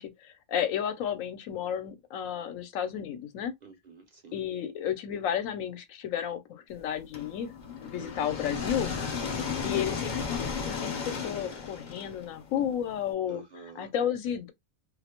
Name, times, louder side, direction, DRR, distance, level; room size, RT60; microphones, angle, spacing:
voice 1, 0.0-3.5 4.3-7.5 7.8-8.9 9.6-13.4 13.8-14.5, left 9 dB, 80° left, 1.0 m, -32 dB
voice 2, 3.6-4.5 8.0-8.4 9.3-9.7 13.3-13.9, right 4 dB, 50° right, 0.5 m, -49 dB
sound 1, 7.1-13.0, left 5 dB, 50° left, 0.6 m, -34 dB
2.5 x 2.0 x 2.8 m
omnidirectional pair, 1.4 m